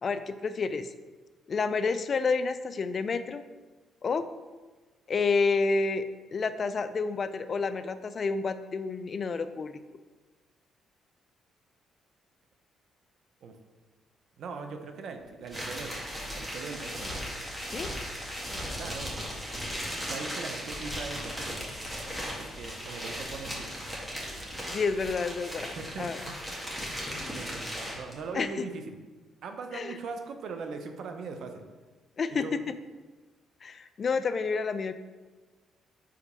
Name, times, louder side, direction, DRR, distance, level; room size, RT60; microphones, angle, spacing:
voice 1, 0.0-0.9 1.5-3.4 4.0-4.2 5.1-6.1 6.3-9.8 17.7-17.9 24.7-26.2 28.3-28.7 29.7-30.0 32.2-32.5 33.6-34.9, left 4 dB, 45° left, 11 dB, 0.4 m, -29 dB
voice 2, 14.4-16.0 16.3-17.1 18.8-19.3 20.0-21.7 22.4-23.8 25.6-26.8 27.3-29.0 29.4-31.6 32.4-32.5, right 4 dB, 70° right, 6 dB, 0.7 m, -40 dB
sound 1, 15.5-28.1, equal, 10° right, 1.9 m, -37 dB
5.0 x 4.0 x 5.4 m, 1.3 s
cardioid pair, 90°, 0 cm